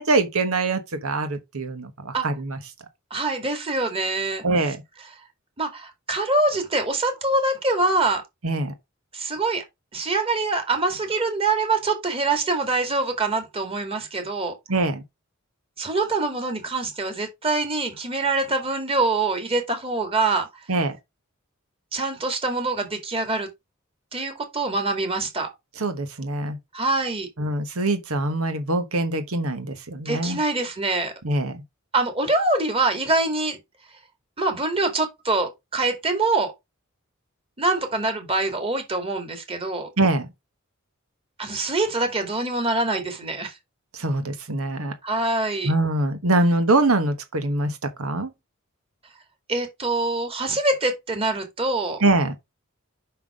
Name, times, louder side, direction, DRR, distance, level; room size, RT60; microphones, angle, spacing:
voice 1, 0.0-2.6 4.4-4.8 8.4-8.7 14.7-15.0 20.7-21.0 25.8-26.6 27.4-30.4 31.2-31.6 40.0-40.3 43.9-44.9 45.6-48.3 52.0-52.3, right 2 dB, 90° right, 1.2 m, -23 dB
voice 2, 3.1-4.4 5.6-8.2 9.1-9.6 9.9-14.5 15.8-20.5 21.9-23.5 24.1-25.5 26.7-27.3 30.1-31.1 31.9-33.6 34.4-36.5 37.6-39.9 41.4-43.5 45.0-45.7 49.5-52.0, right 2 dB, 25° right, 2.2 m, -24 dB
5.8 x 5.7 x 5.0 m
head